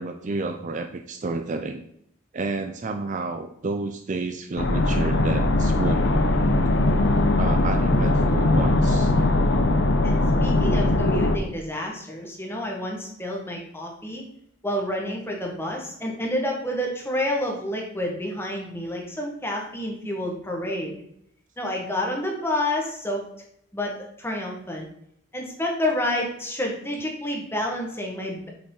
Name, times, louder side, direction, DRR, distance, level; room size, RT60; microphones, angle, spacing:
voice 1, 0.0-1.8 2.3-6.1 7.4-9.4, right 3 dB, 35° right, 6 dB, 0.4 m, -30 dB
sound 1, 4.6-11.4, left 2 dB, 55° left, 0.7 m, -20 dB
voice 2, 10.0-14.2 14.6-20.9 21.6-23.2 23.7-24.9 25.3-28.5, left 1 dB, 10° left, 0 dB, 1.3 m, -29 dB
7.0 x 5.2 x 3.8 m, 0.73 s
head